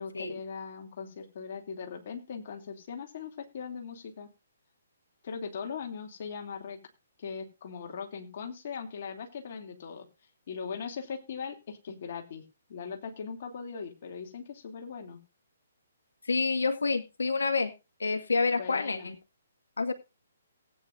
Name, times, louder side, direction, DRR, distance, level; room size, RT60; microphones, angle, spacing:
voice 1, 0.0-4.3 5.2-6.8 7.2-10.1 10.5-15.2 18.5-19.1, left 6 dB, 50° left, 3 dB, 2.8 m, -40 dB
voice 2, 16.3-17.7 18.0-19.2 19.8-19.9, left 4 dB, 70° left, 8 dB, 1.9 m, -28 dB
18.5 x 9.5 x 2.6 m, 0.28 s
figure-of-eight pair, 135°, 0 cm